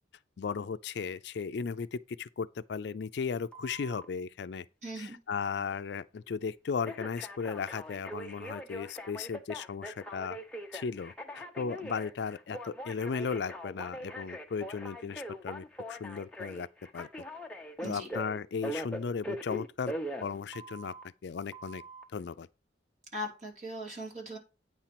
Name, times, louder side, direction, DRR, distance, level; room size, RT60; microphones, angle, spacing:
voice 1, 0.4-4.7 5.0-10.4 10.7-16.7 16.9-17.1 17.8-19.9 20.2-20.9 21.2-21.8 22.1-22.5, left 5 dB, 65° left, 0.4 m, -36 dB
Telephone, 3.5-4.1 6.8-21.0 21.5-22.0, equal, 5° left, 0.8 m, -41 dB
voice 2, 4.8-5.2 17.8-18.1 23.1-24.4, equal, 40° right, 2.8 m, -39 dB
8.9 x 4.3 x 5.9 m
head